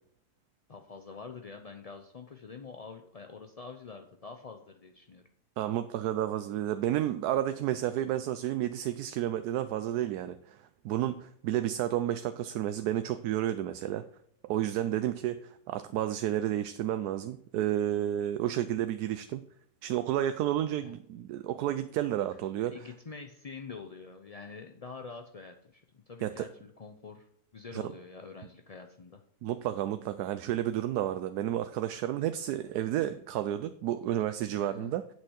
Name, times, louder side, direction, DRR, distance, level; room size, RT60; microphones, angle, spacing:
voice 1, 0.7-5.2 20.8-20.9 22.7-29.2 34.6-34.9, left 4 dB, 55° left, 0.4 m, -46 dB
voice 2, 5.6-14.1 14.4-19.4 19.8-22.8 26.2-26.5 27.7-27.8 29.4-35.0, right 12 dB, 85° right, 1.1 m, -31 dB
8.3 x 6.3 x 6.3 m
omnidirectional pair, 1.6 m